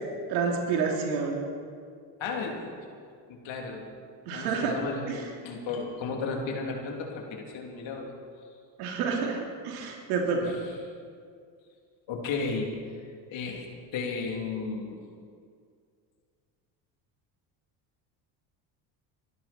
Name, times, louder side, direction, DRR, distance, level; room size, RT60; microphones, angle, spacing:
voice 1, 0.3-1.4 4.3-4.8 5.1-5.2 8.8-10.4, right 5 dB, 85° right, 0 dB, 3.0 m, -29 dB
voice 2, 2.2-2.8 3.3-4.0 4.3-8.1 10.4-10.6 12.1-12.7 13.3-13.7 13.9-15.0, left 4 dB, 65° left, 1 dB, 3.2 m, -34 dB
22.5 x 12.0 x 4.4 m, 2.2 s
supercardioid pair, 80°, 49 cm